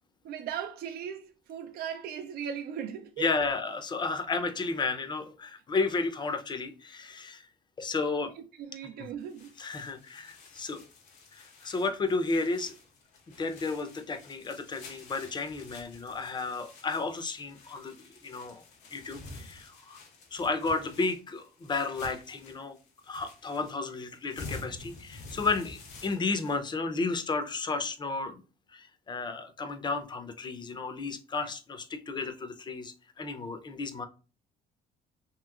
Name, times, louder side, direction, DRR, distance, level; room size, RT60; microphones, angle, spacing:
voice 1, 0.2-3.3 8.2-9.5, right 8 dB, 65° right, 0.5 m, -38 dB
voice 2, 3.2-7.5 7.8-8.3 9.0-9.1 9.6-10.8 11.3-12.7 13.4-18.6 18.9-20.0 20.3-22.8 23.1-28.4 28.7-34.1, left 3 dB, 25° left, 0.5 m, -33 dB
sound 1, 9.2-26.6, left 3 dB, 90° left, 1.0 m, -49 dB
2.9 x 2.9 x 2.4 m
cardioid pair, 110°, 17 cm